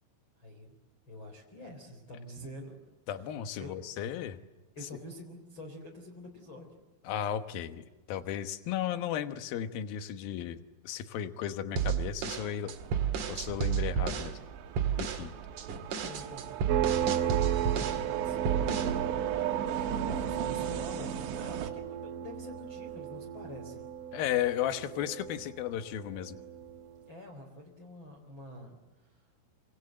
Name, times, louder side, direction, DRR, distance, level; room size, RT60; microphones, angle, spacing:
voice 1, 0.4-0.7 1.1-2.8 3.6-3.8 4.8-6.9 16.0-23.8 27.1-29.2, left 1 dB, 25° left, 1 dB, 3.9 m, -47 dB
voice 2, 3.1-4.4 7.0-12.8 13.3-14.4 15.0-15.3 24.1-26.4, left 10 dB, 65° left, 9 dB, 2.4 m, -35 dB
sound 1, 11.8-14.3 14.8-15.3 15.6-18.1 18.4-19.0, right 8 dB, 50° right, 2.9 m, -31 dB
sound 2, 12.7-21.7, right 9 dB, 70° right, 3.7 m, -37 dB
sound 3, 16.7-27.0, right 10 dB, 90° right, 3.7 m, -35 dB
27.0 x 27.0 x 7.8 m, 1.1 s
omnidirectional pair, 5.6 m